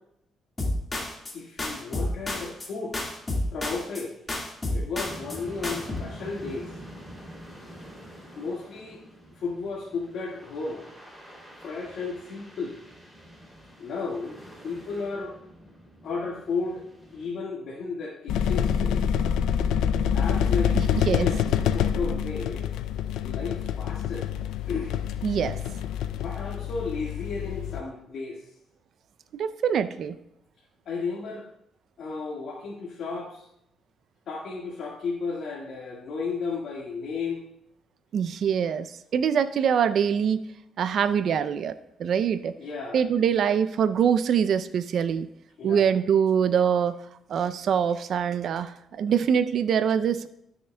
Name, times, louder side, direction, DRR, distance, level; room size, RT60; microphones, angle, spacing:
sound 1, 0.6-1.3 1.6-2.7 2.9-4.0 4.3-5.4 5.6-6.0, left 1 dB, 25° left, 1.8 m, -30 dB
voice 1, 1.3-3.0 3.5-4.1 4.7-6.7 8.3-9.0 9.4-10.8 11.6-12.8 13.8-14.4 14.6-15.3 16.0-16.8 17.1-19.0 20.1-22.7 23.2-24.3 24.7-25.0 26.2-28.4 30.8-31.5 32.0-33.4 34.3-37.4 42.6-43.0 45.6-45.9, left 4 dB, 70° left, -3 dB, 1.6 m, -33 dB
sound 2, 5.0-17.3, equal, 10° right, 2.8 m, -46 dB
sound 3, 18.3-27.8, left 8 dB, 90° left, 0.3 m, -26 dB
voice 2, 20.7-21.3 25.2-25.6 29.4-30.2 38.1-38.9 39.1-40.4 40.8-41.7 42.0-42.5 42.9-45.3 45.6-47.0 47.3-50.3, right 7 dB, 65° right, 12 dB, 0.4 m, -24 dB
12.5 x 6.7 x 2.2 m, 0.78 s
cardioid pair, 90°, 0 cm